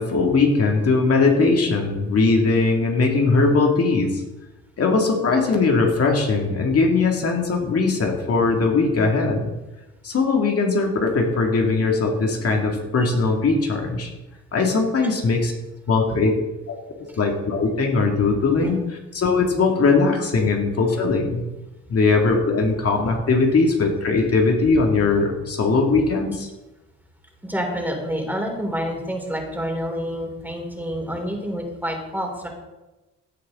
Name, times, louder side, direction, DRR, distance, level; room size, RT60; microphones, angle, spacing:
voice 1, 0.0-4.2 4.8-9.5 10.0-14.1 14.5-15.5 15.9-16.3 16.7-16.8 17.2-18.8 19.1-21.4 21.9-26.5, left 3 dB, 50° left, 1 dB, 2.3 m, -20 dB
voice 2, 27.4-32.5, equal, 5° right, 1 dB, 3.8 m, -28 dB
17.0 x 9.7 x 3.8 m, 1.1 s
cardioid pair, 90°, 30 cm